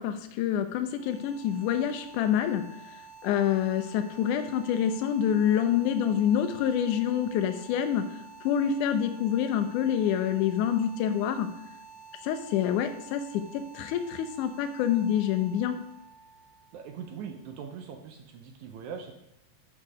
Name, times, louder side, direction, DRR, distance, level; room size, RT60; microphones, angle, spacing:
voice 1, 0.0-2.6 3.2-8.1 8.4-11.5 12.2-15.8, left 9 dB, 75° left, 7 dB, 2.0 m, -27 dB
sound 1, 0.8-17.7, right 5 dB, 60° left, 3.2 m, -50 dB
voice 2, 16.7-19.1, right 7 dB, 75° right, 4 dB, 1.8 m, -41 dB
6.7 x 5.3 x 4.8 m, 0.83 s
omnidirectional pair, 3.9 m